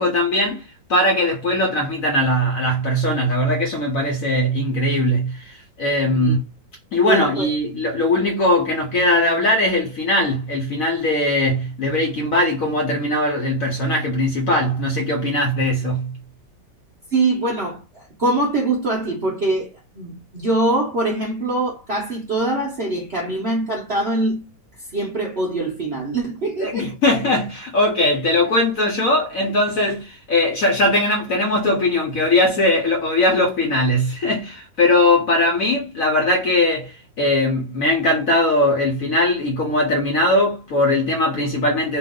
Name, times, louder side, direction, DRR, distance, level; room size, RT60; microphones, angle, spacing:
voice 1, 0.0-6.4 6.9-16.2 26.6-42.0, left 1 dB, 65° left, 0.9 m, -20 dB
voice 2, 6.0-6.4 7.0-7.5 17.1-24.5 24.9-26.9, right 2 dB, 50° right, 0.8 m, -23 dB
3.0 x 2.3 x 3.6 m
omnidirectional pair, 2.1 m